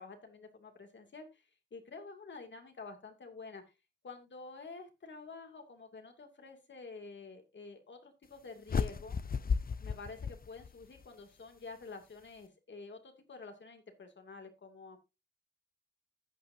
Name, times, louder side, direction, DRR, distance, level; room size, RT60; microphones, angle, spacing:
voice 1, 0.0-3.6 4.0-9.2 9.8-15.0, left 4 dB, 75° left, 5 dB, 2.5 m, -49 dB
sound 1, 8.7-11.1, left 6 dB, 50° left, 0.7 m, -34 dB
13.5 x 8.9 x 2.7 m, 0.25 s
cardioid pair, 60°, 19 cm